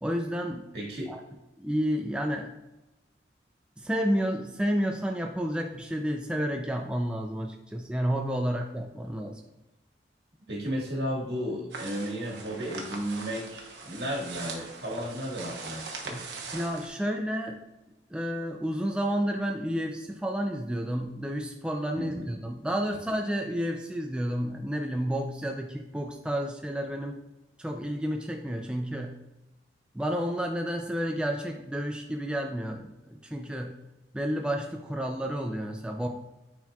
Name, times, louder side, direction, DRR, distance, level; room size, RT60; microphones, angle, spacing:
voice 1, 0.0-0.7 1.1-1.2 1.6-2.5 3.8-9.4 16.5-17.6 18.1-27.2 27.6-29.2 29.9-33.8 34.1-36.1, equal, 5° right, 2 dB, 0.4 m, -30 dB
voice 2, 0.7-1.1 10.5-16.3 22.0-22.3, equal, 65° right, -2 dB, 1.7 m, -34 dB
sound 1, 11.7-16.9, right 3 dB, 80° right, 1.1 m, -41 dB
9.4 x 4.4 x 2.3 m, 0.97 s
head